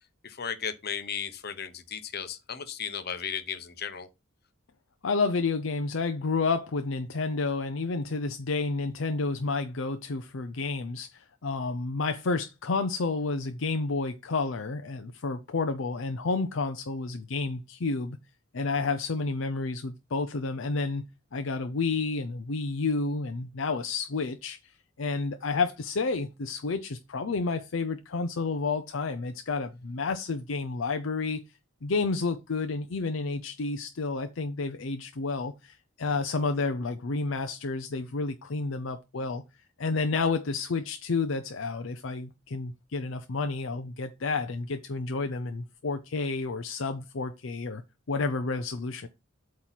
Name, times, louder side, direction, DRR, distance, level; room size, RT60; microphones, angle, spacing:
voice 1, 0.2-4.1, left 7 dB, 50° left, 0.9 m, -35 dB
voice 2, 5.0-18.2 18.5-21.0 21.3-24.6 25.0-31.4 31.8-39.4 39.8-47.8 48.1-49.1, left 3 dB, 70° left, 0.6 m, -30 dB
8.2 x 3.2 x 5.8 m
head